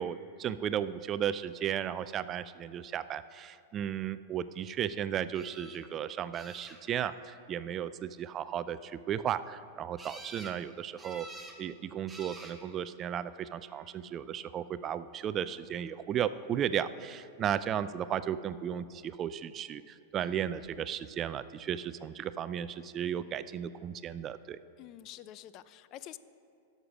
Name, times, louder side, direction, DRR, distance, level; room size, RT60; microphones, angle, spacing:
voice 1, 0.0-11.3 11.6-24.6, right 9 dB, 30° right, 14 dB, 0.3 m, -35 dB
sound 1, 5.3-5.8 6.3-7.1 10.0-10.6 11.0-11.6 12.1-12.6 13.5-14.0 20.2-20.3 20.6-20.7, right 2 dB, 10° right, 1.3 m, -48 dB
voice 2, 24.8-26.2, left 12 dB, 45° left, 15 dB, 0.4 m, -47 dB
11.0 x 6.6 x 6.0 m, 2.4 s
hypercardioid pair, 110°, 0 cm